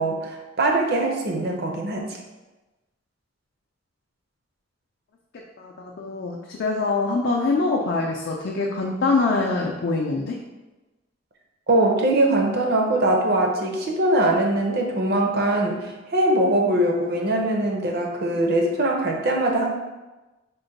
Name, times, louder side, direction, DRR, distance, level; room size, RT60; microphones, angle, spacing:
voice 1, 0.0-2.0 11.7-19.7, right 1 dB, 55° right, 1 dB, 0.6 m, -22 dB
voice 2, 5.6-10.4, left 3 dB, 60° left, -1 dB, 0.4 m, -24 dB
3.8 x 2.1 x 3.9 m, 1.1 s
head